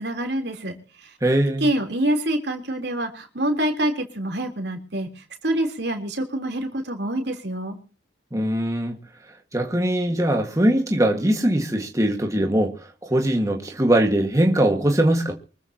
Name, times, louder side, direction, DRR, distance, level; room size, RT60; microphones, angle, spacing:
voice 1, 0.0-1.1 1.6-7.8, right 1 dB, 65° right, 3.7 m, -26 dB
voice 2, 1.2-1.7 8.3-9.0 9.5-12.7 13.0-15.3, right 1 dB, 20° right, 1.8 m, -21 dB
24.5 x 14.0 x 2.9 m
head